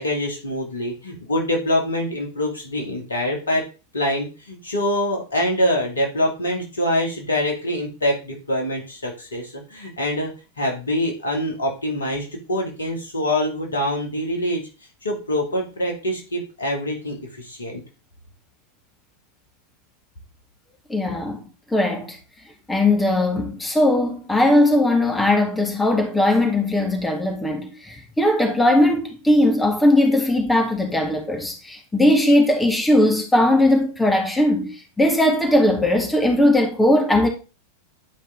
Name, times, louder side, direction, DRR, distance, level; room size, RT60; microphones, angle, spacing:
voice 1, 0.0-3.6 3.9-14.6 15.0-17.8, left 1 dB, 75° left, 2.3 m, -25 dB
voice 2, 20.9-21.4 21.7-22.2 22.7-37.3, left 1 dB, 10° left, 1.8 m, -19 dB
10.0 x 5.2 x 3.8 m
figure-of-eight pair, 90°, 0 cm